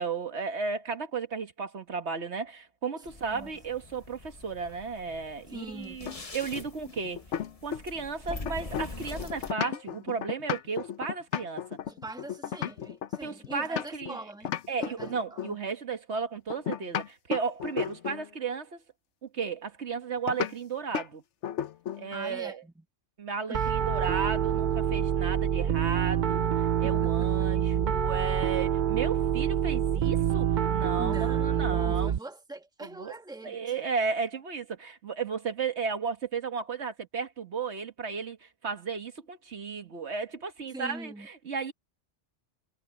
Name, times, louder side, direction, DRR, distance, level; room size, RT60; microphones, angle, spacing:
voice 1, 0.0-7.2 7.6-11.8 13.2-14.2 14.7-18.8 19.2-21.2 22.0-22.6 23.2-32.1 32.8-33.1 33.4-41.7, right 5 dB, 75° right, 1.7 m, -34 dB
sound 1, 3.0-9.5, left 3 dB, 30° left, 1.3 m, -44 dB
voice 2, 5.5-6.1 11.9-15.5 22.1-22.8 23.5-23.7 26.8-27.5 31.0-33.8 40.7-41.3, right 2 dB, 5° right, 1.4 m, -43 dB
sound 2, 6.0-8.0 8.3-14.1 14.4-15.6 16.5-18.3 20.3-20.5 20.9-21.1 21.4-22.1, left 9 dB, 85° left, 1.1 m, -34 dB
Piano, 23.5-32.2, right 9 dB, 50° right, 0.7 m, -26 dB
omnidirectional pair, 1.2 m